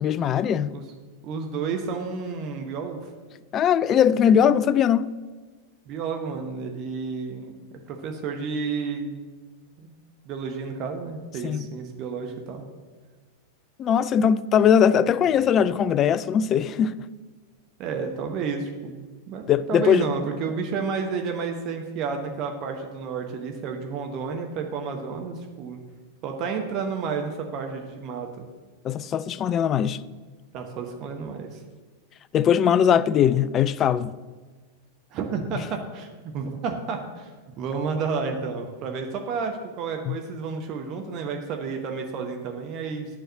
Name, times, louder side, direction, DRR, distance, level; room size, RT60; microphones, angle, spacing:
voice 1, 0.0-0.7 3.5-5.1 11.4-11.6 13.8-17.0 19.5-20.1 28.8-30.0 32.3-34.1 40.1-40.2, left 8 dB, 30° left, 0.3 m, -20 dB
voice 2, 1.2-3.1 5.9-9.2 9.8-9.9 10.2-12.6 17.8-19.4 19.7-25.8 26.2-28.5 30.5-31.6 35.1-36.1 36.3-37.3 37.6-43.1, right 5 dB, 35° right, 1.0 m, -31 dB
9.0 x 4.7 x 7.5 m
figure-of-eight pair, 90°, 0 cm